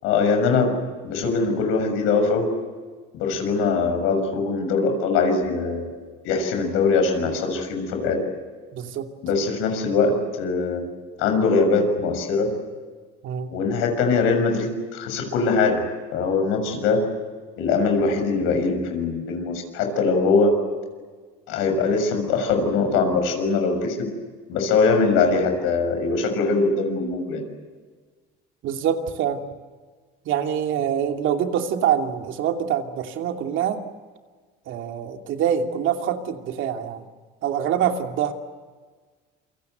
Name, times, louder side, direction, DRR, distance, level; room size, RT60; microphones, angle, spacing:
voice 1, 0.0-0.8 1.0-2.5 3.1-5.9 6.2-8.2 9.2-10.9 11.2-12.5 13.5-15.8 16.1-17.1 17.6-20.6 21.5-24.1 24.5-27.4, left 4 dB, 80° left, 5 dB, 6.8 m, -22 dB
voice 2, 8.7-9.1 13.2-13.5 28.6-29.4 30.2-33.8 34.7-37.0 37.4-38.3, right 9 dB, 65° right, 4 dB, 2.8 m, -25 dB
28.0 x 24.5 x 8.1 m, 1.5 s
supercardioid pair, 100°, 21 cm